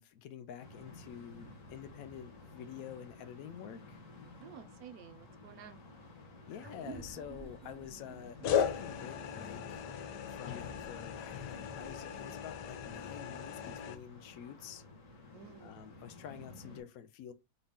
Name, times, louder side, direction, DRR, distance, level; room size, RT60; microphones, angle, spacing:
voice 1, 0.0-4.0 6.5-9.9 10.3-14.8 15.6-17.3, left 9 dB, 70° left, 0.9 m, -48 dB
sound 1, 0.6-16.8, left 2 dB, 55° left, 1.6 m, -54 dB
voice 2, 4.4-5.8 15.3-15.9, right 8 dB, 70° right, 1.0 m, -52 dB
sound 2, 6.5-7.2 8.4-14.0, left 8 dB, 90° left, 1.2 m, -37 dB
sound 3, 6.6-11.5, right 5 dB, 30° right, 0.5 m, -52 dB
4.0 x 2.2 x 3.6 m
omnidirectional pair, 1.7 m